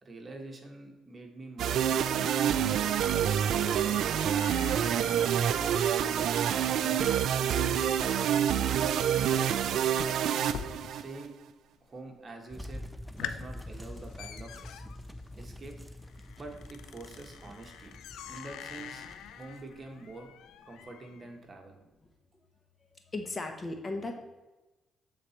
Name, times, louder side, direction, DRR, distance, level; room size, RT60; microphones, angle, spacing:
voice 1, 0.0-2.9 3.8-8.0 8.3-10.0 10.9-11.3 11.8-12.8 13.2-14.8 15.4-15.7 16.4-17.9 18.3-19.0 19.3-20.3 20.6-21.8, right 2 dB, 35° right, 2 dB, 1.4 m, -46 dB
sound 1, 1.6-11.3, right 9 dB, 75° right, 0.3 m, -27 dB
sound 2, 3.2-11.3 11.5-12.1 12.5-12.6 13.0-21.3, left 8 dB, 80° left, 0.4 m, -47 dB
sound 3, 12.5-20.1, left 1 dB, 5° right, 0.5 m, -46 dB
voice 2, 23.1-24.2, left 2 dB, 30° left, 4 dB, 0.9 m, -36 dB
7.6 x 4.0 x 4.3 m, 1.1 s
cardioid pair, 90°, 0 cm